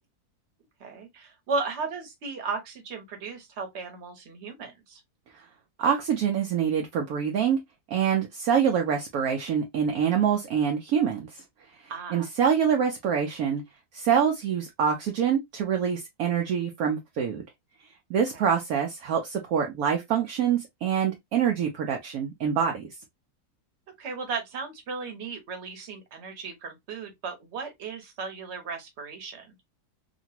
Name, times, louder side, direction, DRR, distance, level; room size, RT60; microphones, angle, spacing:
voice 1, 0.8-5.0 11.9-12.3 18.3-18.4 24.0-29.5, right 4 dB, 50° right, 1.1 m, -35 dB
voice 2, 5.8-7.6 7.9-11.4 11.7-11.8 12.1-13.6 13.9-17.4 18.1-22.9, right 7 dB, 70° right, 1.0 m, -25 dB
2.9 x 2.5 x 2.8 m
omnidirectional pair, 1.7 m